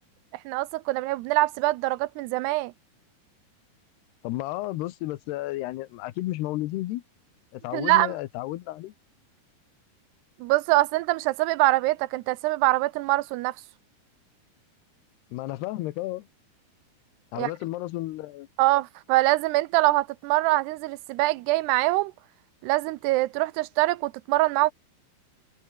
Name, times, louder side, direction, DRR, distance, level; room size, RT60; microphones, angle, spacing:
voice 1, 0.5-2.7 7.7-8.1 10.4-13.5 17.4-17.5 18.6-22.1 22.6-24.7, right 19 dB, 80° right, 2.7 m, -24 dB
voice 2, 4.2-7.0 7.5-8.9 15.3-16.3 17.3-18.5, left 17 dB, 80° left, 3.0 m, -32 dB
omnidirectional pair, 4.9 m